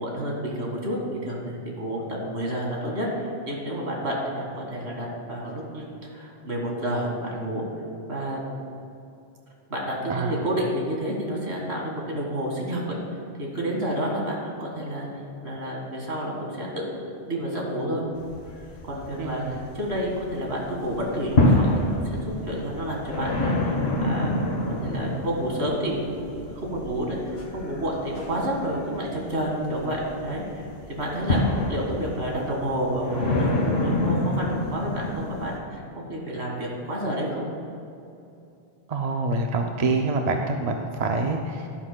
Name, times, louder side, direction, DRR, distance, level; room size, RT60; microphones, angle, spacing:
voice 1, 0.0-7.7 8.1-8.4 9.7-13.0 13.4-18.0 18.9-27.2 27.5-30.4 30.9-31.4 31.7-37.5, equal, 90° right, -2 dB, 2.1 m, -30 dB
voice 2, 10.1-10.4 19.2-19.6 38.9-41.7, right 3 dB, 50° right, 3 dB, 0.5 m, -26 dB
sound 1, 18.2-20.3 20.7-35.6, left 1 dB, 75° left, 1.5 m, -27 dB
12.0 x 11.0 x 2.2 m, 2.6 s
omnidirectional pair, 1.1 m